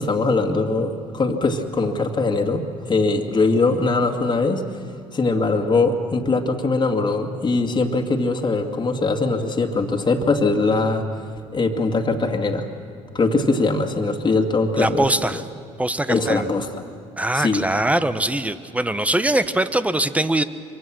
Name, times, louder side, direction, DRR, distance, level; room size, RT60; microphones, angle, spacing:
voice 1, 0.0-4.6 5.1-11.1 11.5-12.7 13.1-15.1 16.1-16.7 17.3-17.6, left 3 dB, 30° left, 4 dB, 2.4 m, -21 dB
voice 2, 14.8-15.4 15.8-16.5 17.2-20.4, right 1 dB, 10° right, 12 dB, 1.3 m, -22 dB
25.5 x 24.0 x 6.4 m, 2.4 s
hypercardioid pair, 60°, 15 cm